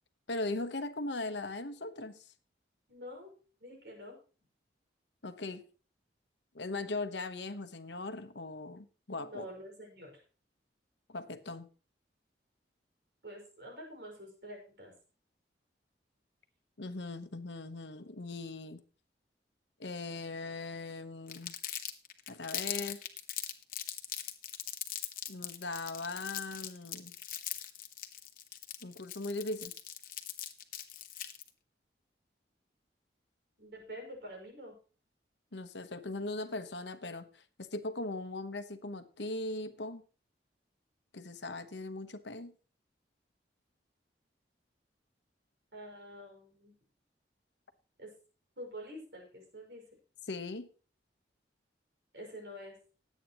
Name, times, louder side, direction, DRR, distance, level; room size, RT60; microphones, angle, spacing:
voice 1, 0.3-2.3 5.2-5.6 6.5-9.5 11.1-11.7 16.8-18.8 19.8-21.6 22.3-23.0 25.3-27.1 28.8-29.7 35.5-40.0 41.1-42.5 50.3-50.7, left 2 dB, 80° left, 10 dB, 1.1 m, -39 dB
voice 2, 2.9-3.3 3.6-4.2 9.2-10.2 13.2-14.9 33.6-34.7 45.7-46.7 48.0-48.1 48.6-49.8 52.1-52.8, equal, 65° right, 1 dB, 5.7 m, -47 dB
Crumpling crinkling, 21.3-31.5, left 11 dB, 50° left, 1.1 m, -40 dB
19.5 x 8.6 x 3.0 m, 0.37 s
head